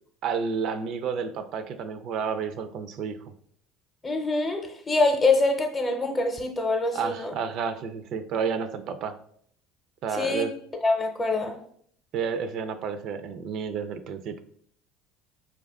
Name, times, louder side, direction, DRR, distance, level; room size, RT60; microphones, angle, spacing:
voice 1, 0.2-3.3 6.9-9.2 10.0-10.5 12.1-14.4, right 6 dB, 60° right, 10 dB, 0.4 m, -31 dB
voice 2, 4.0-7.3 10.1-10.5 10.8-11.5, left 3 dB, 25° left, 4 dB, 0.7 m, -25 dB
4.8 x 2.3 x 3.4 m, 0.63 s
supercardioid pair, 85°, 0 cm